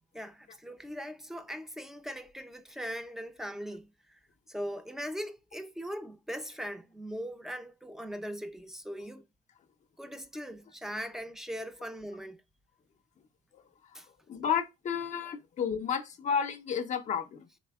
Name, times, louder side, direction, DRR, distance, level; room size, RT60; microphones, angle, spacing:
voice 1, 0.1-4.2 4.5-9.2 10.0-12.4 13.9-14.1, equal, 5° right, 0.5 m, -40 dB
voice 2, 14.3-17.5, left 7 dB, 45° left, 0.6 m, -31 dB
4.2 x 3.2 x 2.3 m
cardioid pair, 110°, 17 cm